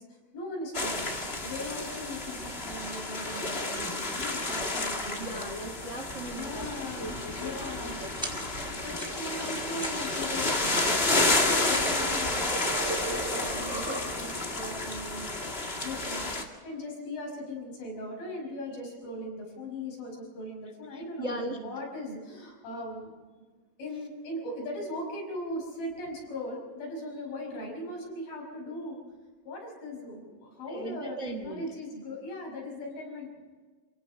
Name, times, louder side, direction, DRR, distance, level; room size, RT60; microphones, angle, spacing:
voice 1, 0.3-1.1 1.4-5.5 6.3-8.0 8.8-15.3 15.8-16.3 16.6-23.1 23.8-29.0 29.4-33.3, left 1 dB, 80° left, 0 dB, 7.4 m, -39 dB
sound 1, 0.7-16.4, left 2 dB, 25° left, 1.3 m, -31 dB
voice 2, 5.2-6.7 7.0-7.7 8.0-8.9 20.9-21.6 22.7-22.8 30.7-31.6, right 1 dB, 55° right, 5 dB, 0.8 m, -39 dB
sound 2, 8.2-8.7 9.0-9.5 9.8-10.3 10.6-11.3 11.7-12.4, right 1 dB, ahead, 3.8 m, -41 dB
sound 3, 11.1-14.5, right 3 dB, 80° right, 5.8 m, -38 dB
27.5 x 17.5 x 5.5 m, 1.4 s
omnidirectional pair, 4.1 m